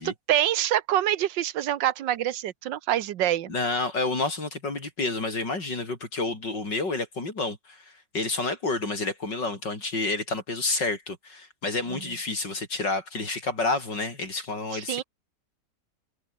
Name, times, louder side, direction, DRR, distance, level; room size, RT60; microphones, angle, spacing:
voice 1, 0.3-3.5 11.9-12.1 14.7-15.0, right 12 dB, 90° right, 1.6 m, -26 dB
voice 2, 3.5-15.0, left 3 dB, 75° left, 6.1 m, -29 dB
omnidirectional pair, 1.9 m